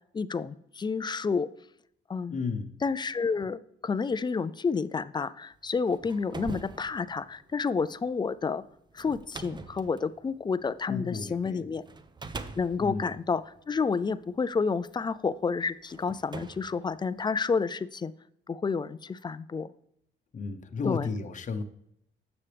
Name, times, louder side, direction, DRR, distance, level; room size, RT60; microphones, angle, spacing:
voice 1, 0.1-1.5 2.1-2.4 2.8-8.6 8.9-11.8 12.6-18.1 18.5-19.7 20.8-21.1, left 5 dB, 25° left, 16 dB, 0.3 m, -30 dB
voice 2, 2.3-2.8 10.9-11.7 12.8-13.1 20.3-21.6, left 4 dB, 40° left, 7 dB, 0.8 m, -33 dB
sound 1, 5.7-11.3 11.9-14.3 15.2-15.3 15.9-17.6, right 3 dB, 20° right, 0.6 m, -44 dB
9.8 x 7.1 x 3.4 m, 0.76 s
cardioid pair, 90°, 20 cm